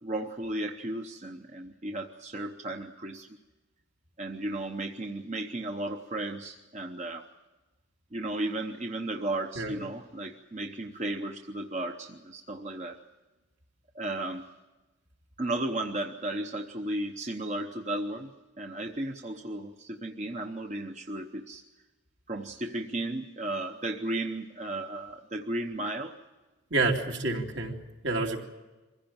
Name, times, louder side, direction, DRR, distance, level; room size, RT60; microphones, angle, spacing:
voice 1, 0.0-3.3 4.2-7.3 8.1-13.0 13.9-14.4 15.4-21.6 22.3-26.2, right 1 dB, 35° right, 4 dB, 0.9 m, -34 dB
voice 2, 26.7-27.8 28.0-28.4, right 2 dB, 65° right, 1 dB, 2.8 m, -28 dB
24.0 x 16.0 x 8.8 m, 1.2 s
head